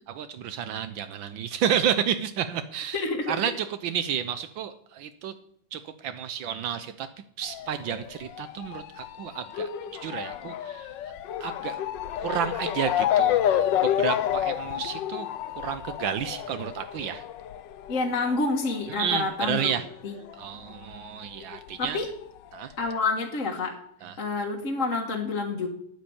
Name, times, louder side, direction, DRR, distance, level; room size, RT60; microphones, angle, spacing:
voice 1, 0.1-5.3 5.7-7.1 7.4-10.9 11.4-11.8 12.2-15.3 15.6-17.2 18.9-19.9 20.3-22.0 22.5-22.7 24.0-24.1, right 8 dB, 75° right, 11 dB, 1.5 m, -31 dB
voice 2, 2.9-3.4 17.9-19.7 20.0-20.1 21.8-22.1 22.8-23.8 24.2-25.7, left 3 dB, 45° left, 1 dB, 1.8 m, -28 dB
Motor vehicle (road) / Siren, 7.4-20.4 20.7-21.9 22.5-22.6 22.9-23.0, left 10 dB, 70° left, 1.4 m, -30 dB
10.0 x 9.3 x 8.6 m, 0.70 s
omnidirectional pair, 2.1 m